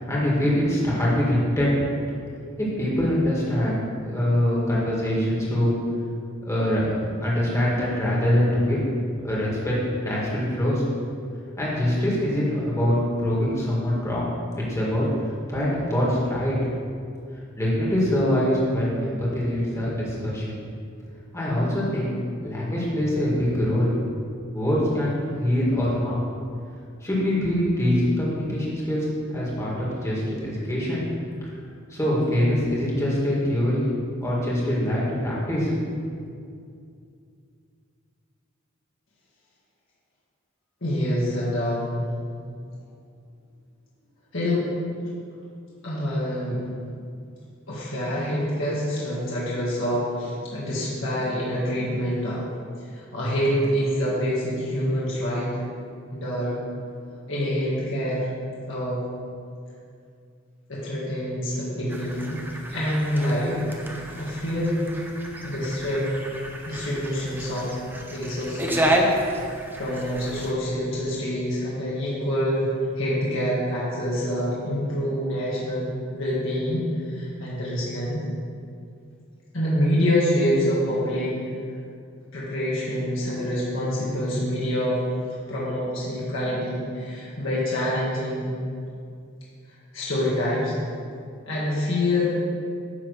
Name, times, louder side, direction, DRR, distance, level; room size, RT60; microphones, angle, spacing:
voice 1, 0.0-1.8 2.6-5.8 6.5-8.9 9.2-10.8 11.6-14.3 14.6-15.1 15.5-16.6 17.6-20.5 21.3-22.2 22.4-23.9 24.5-26.2 27.0-31.1 31.9-33.9 34.2-35.7, left 1 dB, 15° left, -6 dB, 1.8 m, -24 dB
voice 2, 40.8-42.0 44.3-44.7 45.8-46.6 47.7-52.4 52.8-55.7 56.1-56.6 57.3-58.3 58.7-59.0 60.7-62.4 62.7-63.6 64.2-64.8 65.4-66.1 66.6-67.7 68.1-69.3 69.8-72.7 73.0-75.9 76.1-78.3 79.5-81.3 82.3-85.0 85.5-88.5 89.9-90.8 91.5-92.4, equal, 70° left, -7 dB, 1.7 m, -26 dB
sound 1, 61.9-70.5, right 1 dB, 10° right, 0.7 m, -30 dB
9.9 x 3.4 x 6.4 m, 2.4 s
head